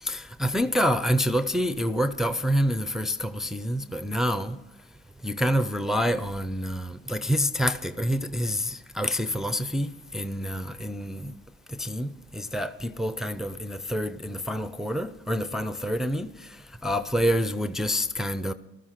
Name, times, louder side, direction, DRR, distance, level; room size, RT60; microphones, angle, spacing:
voice 1, 0.0-4.6 5.2-11.3 11.7-16.6 16.8-18.5, equal, ahead, 0.5 m, -27 dB
15.0 x 13.0 x 5.8 m
cardioid pair, 90°, 30 cm